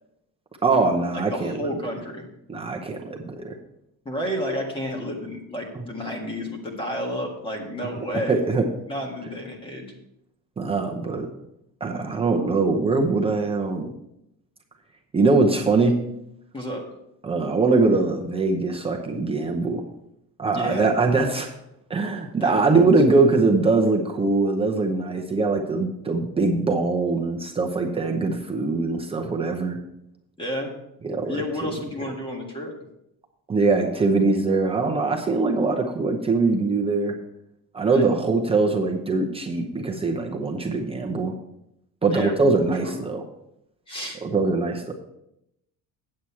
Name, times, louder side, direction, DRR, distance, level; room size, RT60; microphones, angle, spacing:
voice 1, 0.6-1.7 2.5-3.6 7.8-7.9 8.3-8.7 10.6-11.3 11.8-13.9 15.1-16.0 17.2-19.8 20.4-21.5 21.9-29.8 31.0-31.7 33.5-37.1 37.7-41.3 42.0-43.2 44.2-44.9, right 3 dB, 15° right, 1 dB, 0.7 m, -22 dB
voice 2, 1.1-2.3 4.0-8.4 8.9-9.9 16.5-16.8 20.5-20.9 22.4-22.9 30.4-30.7 31.2-32.7 37.8-38.1 42.1-42.4 42.8-43.1 43.9-44.2, equal, 15° left, 1 dB, 1.6 m, -31 dB
8.6 x 7.9 x 4.5 m, 0.81 s
cardioid pair, 175°, 35 cm